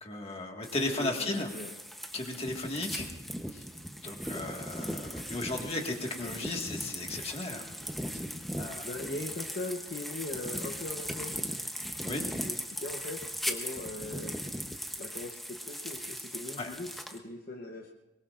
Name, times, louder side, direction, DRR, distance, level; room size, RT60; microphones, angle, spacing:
voice 1, 0.0-1.5 2.1-3.1 3.5-3.6 4.0-7.6 8.5-8.9 12.1-12.2 16.6-16.7, left 2 dB, 30° left, 2 dB, 1.8 m, -35 dB
sound 1, 0.6-17.2, equal, ahead, 0.8 m, -39 dB
voice 2, 1.0-1.7 6.2-6.3 8.8-11.3 11.9-14.4 15.0-17.9, left 2 dB, 45° left, 2 dB, 0.9 m, -40 dB
23.5 x 21.5 x 2.5 m, 1.1 s
head